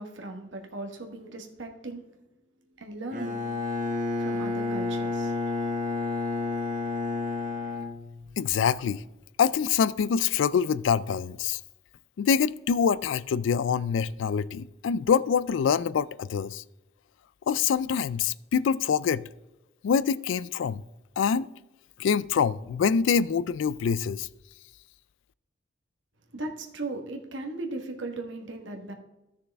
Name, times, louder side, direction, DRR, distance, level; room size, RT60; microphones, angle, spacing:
voice 1, 0.0-2.0 2.7-5.3 26.3-28.9, right 2 dB, 75° right, 1.4 m, -38 dB
Bowed string instrument, 3.1-8.6, left 3 dB, 45° right, 1.0 m, -30 dB
voice 2, 8.4-9.0 9.4-11.6 12.2-16.6 17.5-19.2 19.8-20.8 21.2-21.5 22.0-24.3, left 6 dB, 80° left, 0.3 m, -25 dB
13.5 x 6.5 x 3.5 m
head